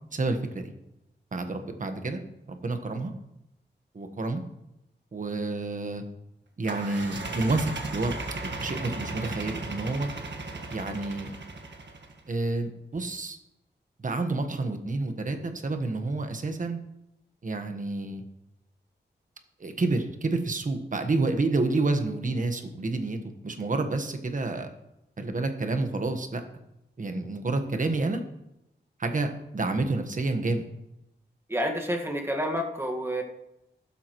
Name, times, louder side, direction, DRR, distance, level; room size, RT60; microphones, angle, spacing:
voice 1, 0.1-0.7 1.3-2.2 2.5-3.1 3.9-4.4 5.1-6.0 6.6-8.2 8.6-10.1 10.7-11.3 12.3-13.4 14.0-16.8 17.4-18.2 19.6-24.7 25.2-26.4 27.0-28.2 29.0-30.6, right 3 dB, 45° right, 6 dB, 1.4 m, -29 dB
sound 1, 6.6-12.2, right 3 dB, 75° right, 1.6 m, -36 dB
voice 2, 31.5-33.2, equal, 15° right, 3 dB, 1.8 m, -29 dB
14.5 x 13.0 x 3.1 m, 0.86 s
wide cardioid pair, 115°, 18 cm